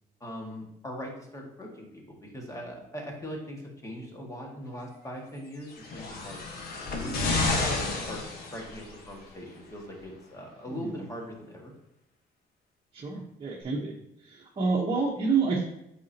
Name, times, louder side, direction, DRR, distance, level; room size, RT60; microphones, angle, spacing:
voice 1, 0.2-6.4 6.9-8.2 8.5-11.7, equal, 20° left, 0 dB, 1.8 m, -41 dB
sound 1, 5.7-9.1 10.0-10.1, left 3 dB, 65° left, 1.4 m, -30 dB
voice 2, 10.7-11.0 12.9-13.9 14.2-15.6, right 4 dB, 30° right, -2 dB, 1.1 m, -28 dB
8.3 x 5.1 x 2.9 m, 0.84 s
cardioid pair, 110°, 17 cm